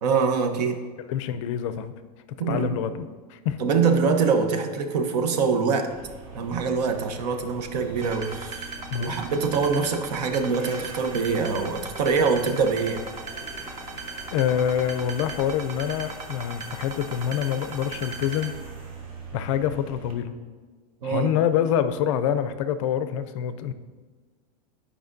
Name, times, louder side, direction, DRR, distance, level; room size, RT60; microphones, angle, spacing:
voice 1, 0.0-0.8 2.4-2.8 3.6-5.9 6.3-8.7 9.0-13.0 21.0-21.4, right 5 dB, 80° right, 6 dB, 0.9 m, -24 dB
voice 2, 1.0-1.9 2.5-3.6 8.9-9.2 14.3-18.5 19.3-20.3 21.0-23.7, left 9 dB, 50° left, 12 dB, 0.4 m, -26 dB
sound 1, 5.9-20.1, right 3 dB, 55° right, 1.2 m, -42 dB
sound 2, 8.0-18.5, right 4 dB, 15° right, 0.4 m, -38 dB
9.6 x 4.9 x 2.6 m, 1.4 s
supercardioid pair, 170°, 20 cm